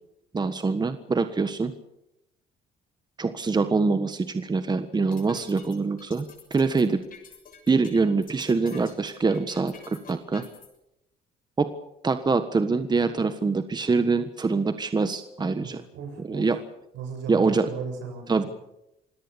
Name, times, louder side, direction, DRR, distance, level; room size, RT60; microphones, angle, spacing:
voice 1, 0.3-1.7 3.2-7.0 7.7-10.4 11.6-11.7 12.0-15.8 16.2-16.6 17.3-17.7 18.3-18.4, right 4 dB, 20° right, 10 dB, 1.5 m, -24 dB
sound 1, 4.9-10.7, left 6 dB, 50° left, 7.0 m, -48 dB
voice 2, 15.6-16.5 16.9-18.3, right 5 dB, 75° right, 4 dB, 7.6 m, -36 dB
26.5 x 17.5 x 7.0 m, 0.85 s
cardioid pair, 95°, 19 cm